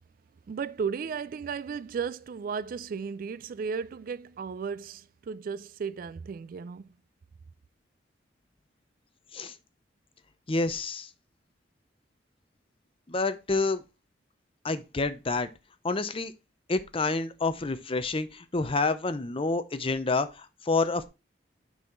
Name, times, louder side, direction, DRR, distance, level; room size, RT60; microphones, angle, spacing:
voice 1, 0.5-6.9, right 6 dB, 50° right, 0.3 m, -35 dB
voice 2, 10.5-11.1 13.1-13.8 14.6-15.5 15.8-16.3 16.7-21.1, left 3 dB, 30° left, 0.7 m, -28 dB
6.1 x 5.5 x 4.5 m
head